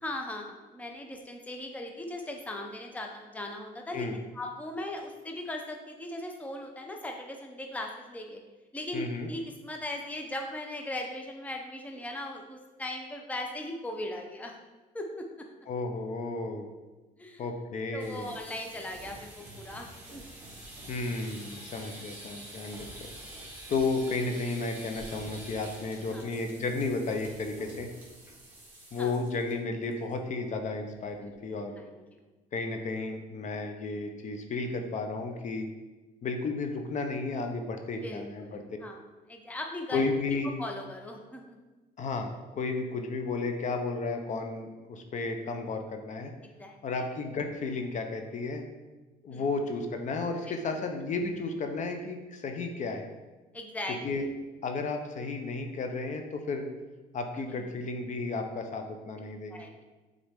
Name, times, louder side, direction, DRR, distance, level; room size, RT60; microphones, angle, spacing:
voice 1, 0.0-4.1 4.3-8.4 8.7-14.6 14.9-15.5 17.2-17.4 17.9-20.2 26.1-26.3 29.0-29.1 31.2-31.4 31.9-32.0 38.0-39.0 39.3-40.0 40.3-41.6 46.6-46.8 49.3-49.5 50.5-50.6 53.5-54.0 57.4-57.7 59.5-59.7, left 1 dB, 10° left, 2 dB, 0.7 m, -39 dB
voice 2, 8.9-9.3 15.7-16.7 17.4-18.3 20.9-23.1 23.7-27.9 28.9-31.8 32.5-35.7 36.2-38.6 39.9-40.6 42.0-46.3 46.8-48.6 49.2-53.1 54.0-54.3 54.6-56.7 57.1-59.6, left 3 dB, 45° left, 5 dB, 0.7 m, -33 dB
sound 1, 17.9-29.5 29.8-30.1 30.4-30.5 30.9-31.3, right 1 dB, 10° right, 1.9 m, -47 dB
7.2 x 3.9 x 3.6 m, 1.2 s
cardioid pair, 110°, 17 cm